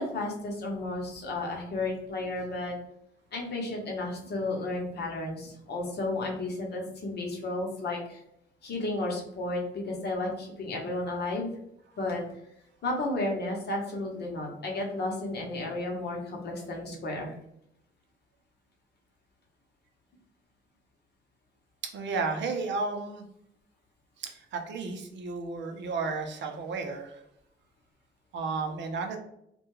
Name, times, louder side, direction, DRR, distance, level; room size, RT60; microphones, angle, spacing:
voice 1, 0.0-2.8 3.3-8.2 8.6-11.5 12.0-12.2 12.8-17.4, left 2 dB, 55° left, 0 dB, 0.8 m, -33 dB
voice 2, 21.9-23.2 24.2-27.2 28.3-29.2, right 4 dB, 65° right, 4 dB, 0.5 m, -33 dB
2.3 x 2.2 x 3.0 m, 0.76 s
cardioid pair, 90°, 20 cm